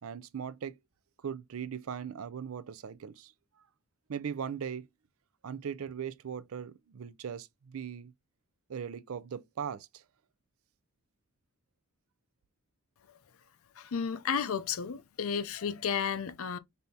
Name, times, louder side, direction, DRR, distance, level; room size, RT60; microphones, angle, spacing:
voice 1, 0.0-0.7 1.2-3.3 4.1-4.9 5.4-8.1 8.7-10.0, right 7 dB, 70° right, 0.4 m, -39 dB
voice 2, 13.8-16.6, left 7 dB, 70° left, 0.5 m, -32 dB
5.4 x 3.4 x 2.7 m
head